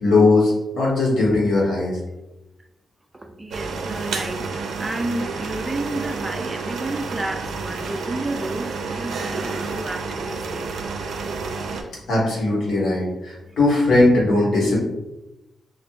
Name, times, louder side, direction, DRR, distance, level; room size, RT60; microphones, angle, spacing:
voice 1, 0.0-2.0 12.1-14.8, left 2 dB, 85° left, -4 dB, 1.3 m, -19 dB
voice 2, 3.1-10.9, right 2 dB, 15° right, 4 dB, 0.3 m, -31 dB
sound 1, 3.5-11.8, right 4 dB, 85° right, 0.4 m, -30 dB
4.5 x 2.4 x 2.3 m, 0.96 s
cardioid pair, 115°, 0 cm